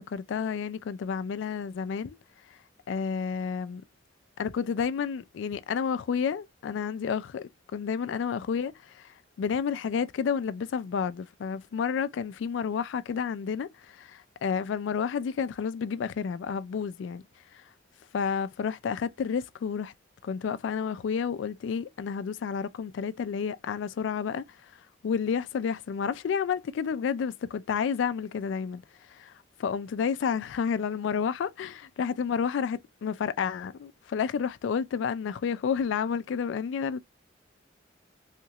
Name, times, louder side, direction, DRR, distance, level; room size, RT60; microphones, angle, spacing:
voice 1, 0.0-2.2 2.9-3.8 4.4-17.2 17.5-17.6 18.1-19.9 20.2-24.4 25.0-28.8 29.1-29.3 29.6-37.0, left 6 dB, 70° left, 0.3 m, -30 dB
2.9 x 2.4 x 2.8 m
head